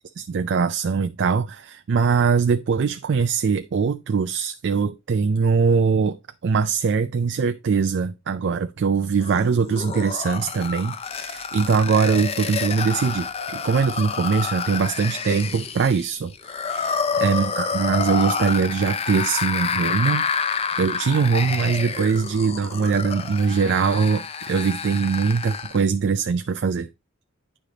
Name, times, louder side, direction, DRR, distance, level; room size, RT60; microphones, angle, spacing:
voice 1, 0.2-6.2 6.4-20.3 20.8-26.9, right 5 dB, 55° right, 0.3 m, -22 dB
sound 1, 9.2-25.8, left 6 dB, 30° left, 0.4 m, -28 dB
9.8 x 3.4 x 3.8 m
head